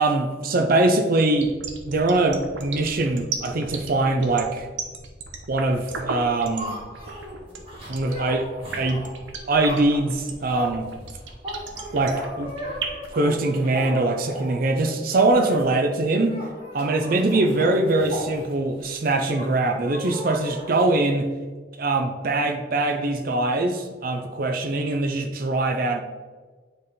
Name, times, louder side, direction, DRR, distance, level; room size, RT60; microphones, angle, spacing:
voice 1, 0.0-1.6 1.8-4.7 5.5-6.8 7.9-8.5 8.8-9.0 9.5-10.9 11.9-12.5 13.1-16.4 16.7-21.3 21.8-26.0, right 2 dB, 50° right, 4 dB, 0.5 m, -22 dB
sound 1, 1.3-13.1, right 5 dB, 80° right, 0.9 m, -34 dB
sound 2, 6.2-14.7 15.3-15.6 15.9-16.0 16.2-18.9 19.3-20.9, equal, 30° right, 2.1 m, -36 dB
8.8 x 3.4 x 4.2 m, 1.4 s
head